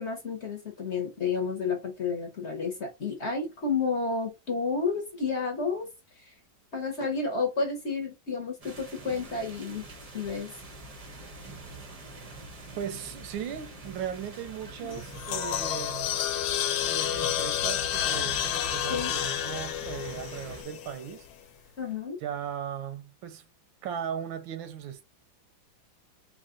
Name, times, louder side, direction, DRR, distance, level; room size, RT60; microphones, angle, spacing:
voice 1, 0.0-5.9 6.2-6.3 6.7-9.8 10.1-10.5 14.8-15.0 18.9-19.1 21.8-22.2, left 4 dB, 45° left, 1.0 m, -31 dB
sound 1, 8.6-20.6, right 2 dB, 45° right, 0.4 m, -44 dB
voice 2, 12.8-16.2 16.8-21.3 22.2-23.4 23.8-25.0, right 9 dB, 85° right, 1.4 m, -37 dB
sound 2, 14.9-21.2, left 11 dB, 80° left, 1.3 m, -30 dB
3.6 x 2.4 x 3.7 m
omnidirectional pair, 2.1 m